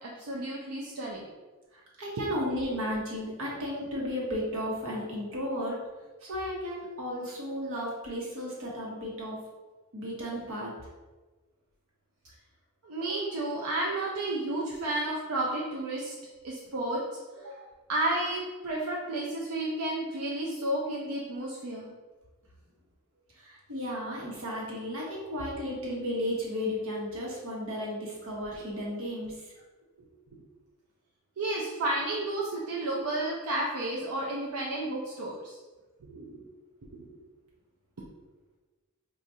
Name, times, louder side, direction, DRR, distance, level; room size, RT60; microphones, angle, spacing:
voice 1, 0.0-1.3 2.2-2.4 12.8-16.1 16.4-17.0 17.4-17.6 17.9-21.9 31.4-35.6 36.0-36.4 36.9-37.1, right 1 dB, 85° right, -3 dB, 0.5 m, -32 dB
voice 2, 1.7-5.8 6.2-9.4 9.9-10.7 23.4-29.4, equal, 65° right, -4 dB, 1.1 m, -34 dB
4.7 x 2.4 x 2.7 m, 1.2 s
head